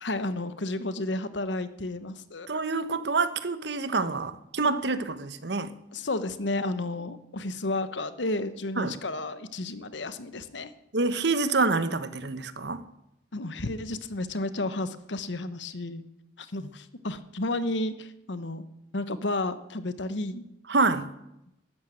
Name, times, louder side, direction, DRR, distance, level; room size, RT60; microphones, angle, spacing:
voice 1, 0.0-2.5 5.9-10.7 13.3-16.0 16.4-18.7 18.9-20.4, left 2 dB, 80° left, 1.1 m, -32 dB
voice 2, 2.5-5.7 8.8-9.0 10.9-12.8 20.7-21.1, right 3 dB, 70° right, 1.0 m, -27 dB
13.0 x 11.5 x 8.9 m
head